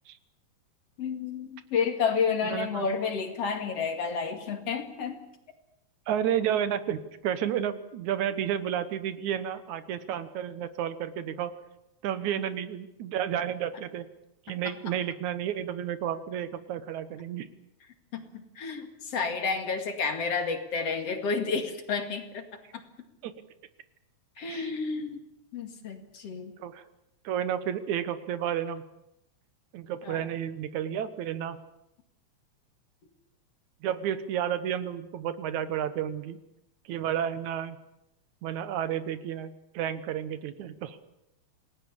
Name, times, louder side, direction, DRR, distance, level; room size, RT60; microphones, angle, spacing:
voice 1, 1.0-5.2 12.2-12.4 18.1-22.4 22.7-22.8 24.4-25.2 25.5-26.5 30.0-30.2, left 5 dB, 55° left, 5 dB, 3.2 m, -30 dB
voice 2, 2.4-2.8 6.1-11.5 12.0-14.1 14.5-17.5 23.2-23.3 24.5-24.7 26.6-26.8 27.2-28.8 29.7-31.6 33.8-36.4 36.9-37.8 38.4-41.0, right 9 dB, 80° right, 12 dB, 2.6 m, -31 dB
28.5 x 18.5 x 7.1 m, 0.84 s
omnidirectional pair, 3.3 m